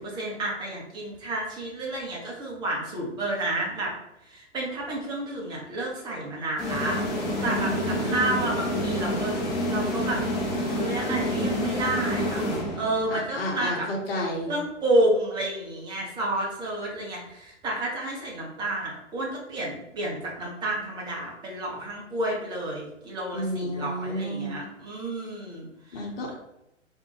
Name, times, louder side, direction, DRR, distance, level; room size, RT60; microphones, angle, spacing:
voice 1, 0.0-3.9 4.2-9.3 9.7-10.2 10.7-12.4 12.8-13.9 14.5-26.1, right 1 dB, 10° right, -3 dB, 0.7 m, -30 dB
sound 1, 6.6-13.2, equal, 20° left, 0.9 m, -28 dB
voice 2, 7.4-8.2 13.1-14.6 23.3-24.6 25.9-26.3, equal, 50° left, -1 dB, 1.2 m, -31 dB
3.3 x 2.6 x 3.2 m, 0.85 s
figure-of-eight pair, 110°, 37 cm